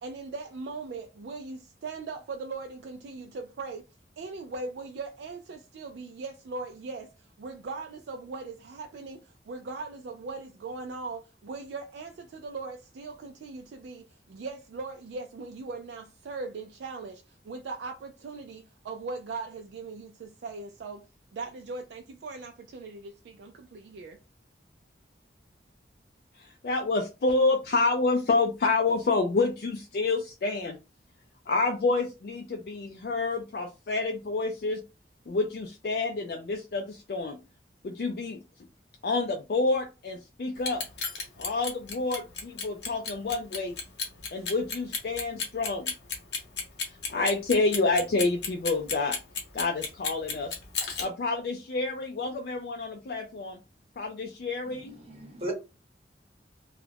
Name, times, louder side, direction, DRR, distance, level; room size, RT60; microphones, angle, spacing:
voice 1, 0.0-3.9 4.2-7.1 7.4-21.0 21.3-24.2, right 3 dB, 80° right, 0.3 m, -39 dB
voice 2, 26.4-30.8 31.5-34.8 35.3-37.4 37.8-38.4 39.0-40.8 41.4-43.8 44.3-45.9 47.1-49.1 49.5-50.5 51.0-53.6 54.0-55.0, left 3 dB, 60° left, 0.3 m, -28 dB
Clock, 40.6-51.0, left 5 dB, 80° left, 0.9 m, -32 dB
voice 3, 54.6-55.5, right 1 dB, 35° right, 0.9 m, -37 dB
2.3 x 2.0 x 3.3 m
head